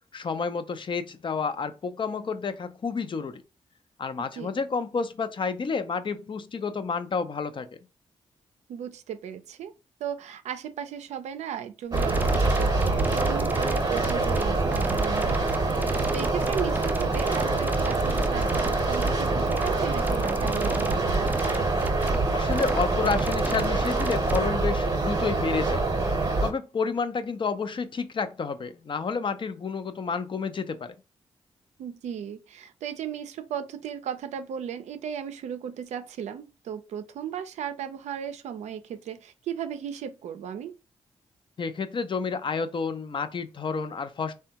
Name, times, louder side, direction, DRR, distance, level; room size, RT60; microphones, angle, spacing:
voice 1, 0.1-3.4 4.0-7.7 22.3-25.8 26.4-31.0 41.6-44.3, left 5 dB, 45° left, 0.5 m, -30 dB
voice 2, 4.2-4.6 8.7-9.7 10.0-21.3 31.8-40.7, right 8 dB, 80° right, 0.4 m, -36 dB
sound 1, 11.9-24.4, right 2 dB, 15° right, 0.4 m, -36 dB
sound 2, 11.9-26.5, right 3 dB, 35° right, 0.8 m, -25 dB
3.4 x 2.2 x 2.8 m
supercardioid pair, 50°, 12 cm